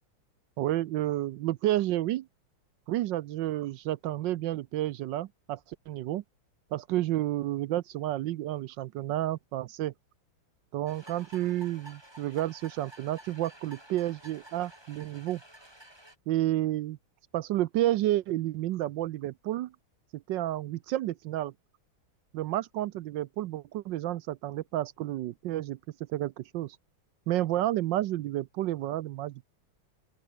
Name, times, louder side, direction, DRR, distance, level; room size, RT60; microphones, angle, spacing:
voice 1, 0.6-2.3 2.9-5.6 5.9-6.2 6.7-9.9 10.7-15.4 16.3-17.0 17.3-19.7 20.1-21.5 22.3-25.8 26.1-26.8 27.3-29.5, right 14 dB, 70° right, 1.2 m, -30 dB
sound 1, 10.9-16.2, right 1 dB, 10° right, 5.0 m, -52 dB
open air
omnidirectional pair, 2.3 m